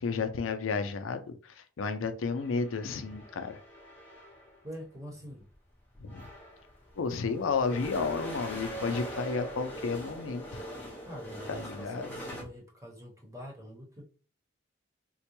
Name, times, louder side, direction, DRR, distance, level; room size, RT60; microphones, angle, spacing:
voice 1, 0.0-3.6 6.0-6.2 7.0-10.7 11.5-12.1, left 4 dB, 90° left, 9 dB, 0.4 m, -32 dB
sound 1, 2.4-4.6 5.5-5.6 5.9-12.4, equal, 10° left, 0.6 m, -42 dB
voice 2, 4.6-5.5 11.0-14.0, equal, 15° right, -1 dB, 1.0 m, -45 dB
3.8 x 2.2 x 2.9 m, 0.39 s
head